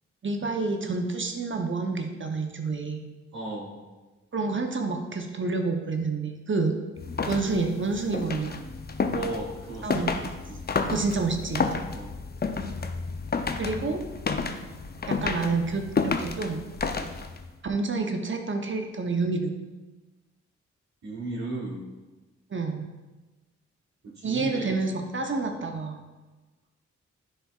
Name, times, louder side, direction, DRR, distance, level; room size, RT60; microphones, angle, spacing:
voice 1, 0.2-3.0 4.3-6.8 7.3-8.6 9.8-10.2 10.8-11.7 13.6-14.0 15.1-16.6 17.6-19.5 22.5-22.9 24.2-26.0, right 3 dB, 40° right, 4 dB, 0.9 m, -28 dB
voice 2, 3.3-3.8 9.1-10.2 10.5-10.6 11.9-12.2 21.0-21.9 24.0-24.7 25.2-25.8, right 2 dB, 60° right, -6 dB, 1.6 m, -36 dB
sound 1, 7.0-17.5, left 4 dB, 30° left, 0.6 m, -31 dB
9.9 x 4.3 x 2.4 m, 1.2 s
supercardioid pair, 45°, 30 cm